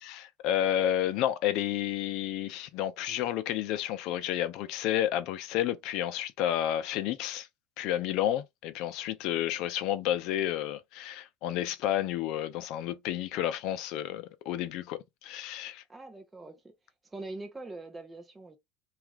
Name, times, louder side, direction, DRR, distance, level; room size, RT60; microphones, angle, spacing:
voice 1, 0.0-7.5 7.8-15.8, left 12 dB, 60° left, 0.5 m, -31 dB
voice 2, 15.9-16.6 17.1-18.6, right 2 dB, 10° right, 0.6 m, -43 dB
2.9 x 2.4 x 3.4 m
cardioid pair, 145°, 0 cm